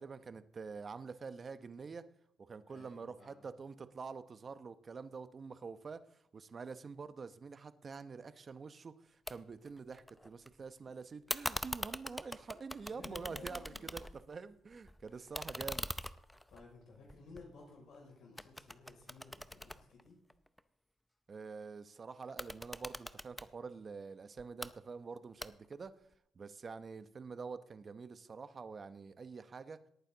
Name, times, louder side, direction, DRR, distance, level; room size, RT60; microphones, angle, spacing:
voice 1, 0.0-2.1 2.4-15.9 21.3-25.9 26.3-29.8, right 5 dB, 40° right, 12 dB, 0.9 m, -47 dB
voice 2, 2.7-3.5 12.9-13.8 15.1-15.3 16.5-20.2, left 3 dB, 75° left, -2 dB, 5.9 m, -55 dB
sound 1, 9.3-9.4 9.7-10.5 11.3-14.4 14.7-18.0 18.4-20.6 22.2-23.5 24.4-24.7 25.4-25.9, left 1 dB, 5° left, 0.6 m, -43 dB
18.5 x 9.2 x 4.0 m, 0.73 s
cardioid pair, 90°, 0 cm